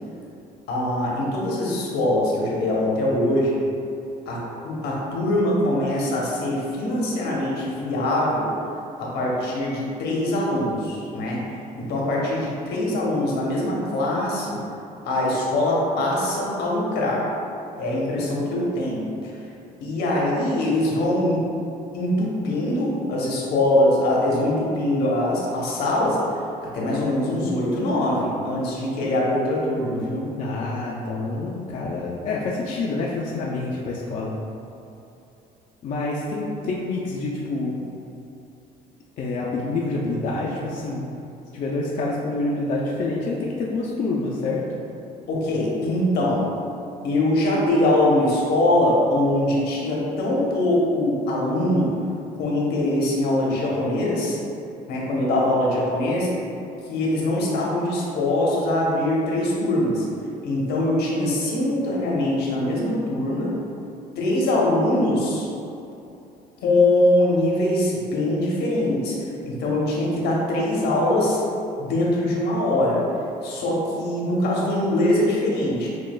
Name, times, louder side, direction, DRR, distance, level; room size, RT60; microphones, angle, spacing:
voice 1, 0.7-3.6 4.3-8.5 9.0-11.4 11.7-14.6 15.0-17.3 17.8-19.3 19.8-21.4 21.9-26.4 26.7-30.3 45.3-46.5 47.0-51.9 52.3-54.4 54.9-56.3 56.9-60.1 60.4-63.5 64.2-65.5 66.6-71.4 71.8-73.0 73.4-75.9, left 1 dB, 75° left, -4 dB, 0.9 m, -22 dB
voice 2, 30.4-34.3 35.8-37.8 39.2-41.0 41.5-44.7, left 2 dB, 50° left, -4 dB, 0.4 m, -27 dB
6.2 x 2.3 x 2.2 m, 2.8 s
cardioid pair, 110°, 17 cm